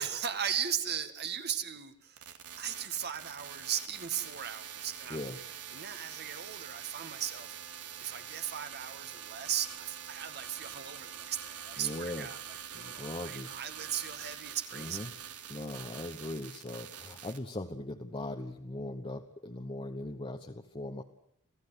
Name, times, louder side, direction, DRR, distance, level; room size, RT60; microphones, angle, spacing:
voice 1, 0.0-5.2 5.7-15.0, right 9 dB, 50° right, 9 dB, 2.0 m, -37 dB
sound 1, 2.2-17.4, right 9 dB, 85° right, 2.4 m, -45 dB
voice 2, 11.8-12.3 12.7-13.5 14.7-15.1 15.5-21.0, left 1 dB, 25° left, 4 dB, 1.2 m, -39 dB
27.5 x 17.0 x 8.1 m, 0.71 s
head